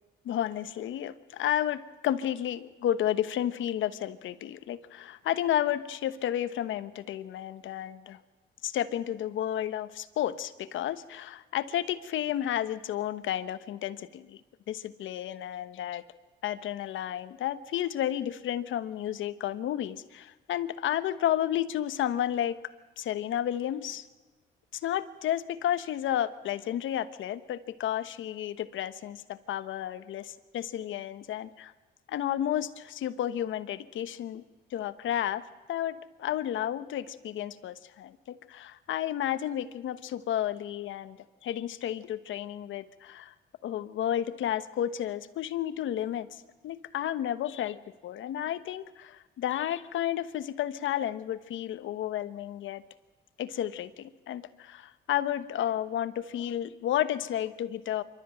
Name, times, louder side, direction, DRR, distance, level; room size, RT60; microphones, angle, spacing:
voice 1, 0.2-8.2 8.6-14.4 14.7-16.0 16.4-22.6 23.0-24.0 24.7-31.7 32.1-34.4 34.7-35.4 35.7-41.2 41.4-43.3 43.6-52.8 53.4-58.0, left 11 dB, 75° left, 13 dB, 1.2 m, -32 dB
26.0 x 13.0 x 8.9 m, 1.2 s
cardioid pair, 90°, 20 cm